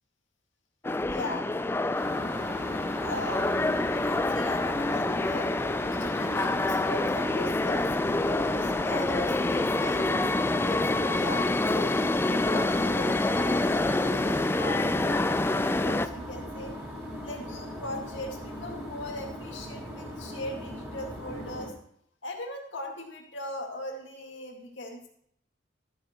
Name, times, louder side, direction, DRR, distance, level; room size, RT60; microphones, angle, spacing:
sound 1, 0.8-16.1, left 2 dB, 10° left, 0.3 m, -27 dB
voice 1, 1.0-1.5 3.0-3.6 3.9-5.5 5.9-11.9 12.3-16.7 17.2-21.7 22.2-25.1, left 1 dB, 80° left, 1 dB, 2.0 m, -40 dB
sound 2, 1.9-21.7, equal, 5° right, 3.8 m, -39 dB
13.5 x 8.6 x 3.0 m, 0.69 s
head